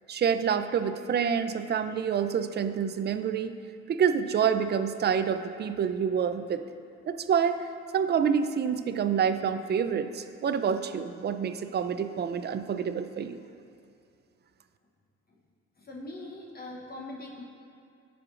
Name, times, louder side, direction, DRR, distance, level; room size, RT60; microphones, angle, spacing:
voice 1, 0.1-3.6 3.9-6.6 7.1-7.7 7.9-13.4, right 7 dB, 35° right, 10 dB, 0.4 m, -27 dB
voice 2, 15.8-17.4, left 2 dB, 30° left, -2 dB, 0.9 m, -42 dB
13.5 x 4.7 x 2.4 m, 2.5 s
cardioid pair, 90°, 30 cm